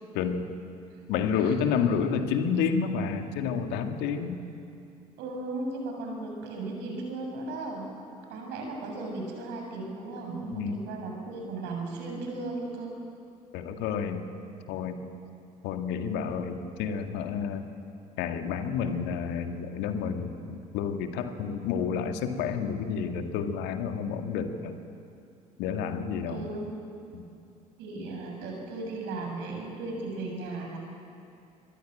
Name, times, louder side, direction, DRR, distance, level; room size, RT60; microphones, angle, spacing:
voice 1, 0.1-0.5 1.1-4.4 10.5-10.8 13.5-14.2 14.7-15.0 15.6-17.7 18.2-24.8 25.6-26.4 27.1-27.3, left 6 dB, 65° left, 6 dB, 2.0 m, -30 dB
voice 2, 5.2-7.9 8.3-12.9 21.9-22.0 26.3-26.7 27.8-30.8, right 2 dB, 65° right, 1 dB, 7.2 m, -36 dB
25.0 x 22.0 x 9.1 m, 2.5 s
figure-of-eight pair, 50°, 19 cm